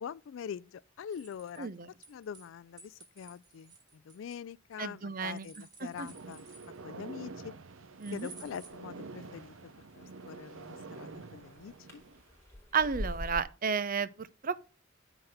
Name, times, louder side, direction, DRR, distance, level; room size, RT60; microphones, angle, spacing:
voice 1, 0.0-1.7 2.1-6.5 6.8-7.5 8.1-12.0, left 7 dB, 70° left, 0.3 m, -44 dB
sound 1, 1.1-2.5 2.8-4.7 5.2-7.0 8.0-8.7, right 4 dB, 20° right, 2.0 m, -55 dB
voice 2, 1.6-1.9 4.8-5.5 5.8-6.1 8.0-8.3 12.7-14.6, right 5 dB, 45° right, 0.6 m, -32 dB
sound 2, 5.9-12.3, right 3 dB, 80° right, 0.8 m, -47 dB
sound 3, 8.2-13.4, left 1 dB, 15° left, 4.1 m, -46 dB
9.8 x 4.0 x 6.5 m
head